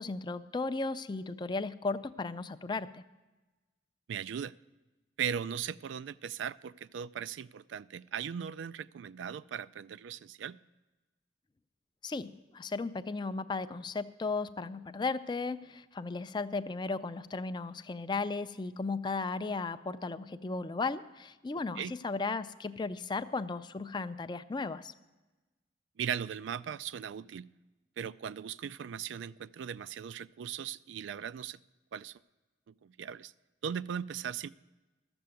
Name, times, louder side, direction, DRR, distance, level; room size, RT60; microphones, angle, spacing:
voice 1, 0.0-3.0 12.0-24.9, left 3 dB, 25° left, 12 dB, 0.4 m, -35 dB
voice 2, 4.1-4.5 5.2-10.6 21.8-21.9 26.0-27.5 28.0-31.6 31.9-32.2 32.7-33.3 33.6-34.5, right 8 dB, 80° right, 18 dB, 0.3 m, -38 dB
13.5 x 7.0 x 7.6 m, 1.2 s
head